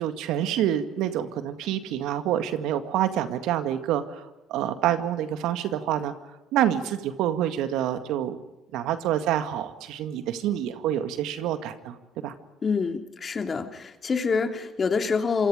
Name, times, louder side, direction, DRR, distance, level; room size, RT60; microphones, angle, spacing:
voice 1, 0.0-6.1 6.5-8.4 8.7-12.0 12.2-12.3, right 11 dB, 75° right, 9 dB, 2.0 m, -27 dB
voice 2, 12.6-15.5, left 5 dB, 40° left, 5 dB, 2.9 m, -26 dB
26.5 x 25.0 x 5.1 m, 1.0 s
hypercardioid pair, 60°, 0 cm